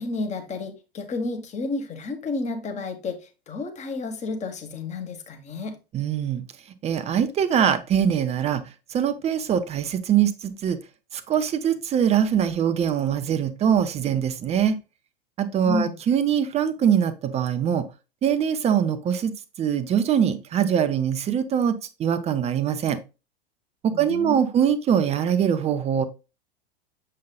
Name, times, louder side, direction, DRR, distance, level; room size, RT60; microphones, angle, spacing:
voice 1, 0.0-5.8 15.6-16.0 23.9-24.5, left 3 dB, 20° left, 5 dB, 1.4 m, -31 dB
voice 2, 5.9-6.4 6.8-8.6 8.9-10.8 11.1-14.8 15.4-17.8 18.2-19.3 19.6-23.0 23.8-26.0, right 8 dB, 20° right, 11 dB, 0.6 m, -23 dB
7.4 x 5.5 x 2.3 m, 0.29 s
figure-of-eight pair, 90°, 31 cm